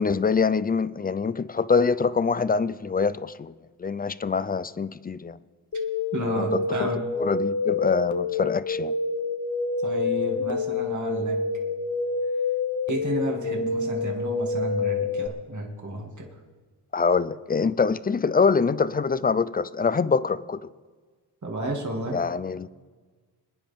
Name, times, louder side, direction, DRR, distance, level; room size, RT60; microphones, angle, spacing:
voice 1, 0.0-3.5 3.8-5.4 6.2-6.9 7.2-8.9 16.9-20.6 22.1-22.7, left 5 dB, 25° left, 0.4 m, -24 dB
sound 1, 5.7-15.3, left 4 dB, 45° left, 1.0 m, -27 dB
voice 2, 6.1-7.1 9.8-11.4 12.9-16.3 21.4-22.2, right 1 dB, 45° right, 2.3 m, -31 dB
25.5 x 10.0 x 3.6 m
wide cardioid pair, 95°, 42 cm